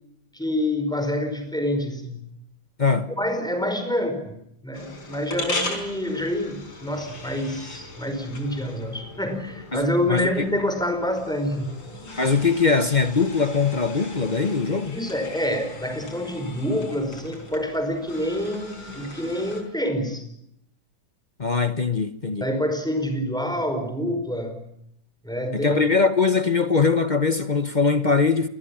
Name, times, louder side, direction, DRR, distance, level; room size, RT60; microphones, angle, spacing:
voice 1, 0.3-2.2 3.1-4.4 4.6-11.8 14.8-20.2 22.4-24.7 25.2-25.9, left 1 dB, ahead, 5.0 m, -27 dB
voice 2, 2.8-3.1 9.7-10.3 12.2-15.0 21.4-22.5 25.5-28.5, left 4 dB, 30° left, 0.9 m, -21 dB
sound 1, 4.7-19.6, left 2 dB, 90° left, 5.3 m, -38 dB
28.0 x 22.0 x 7.3 m
omnidirectional pair, 2.0 m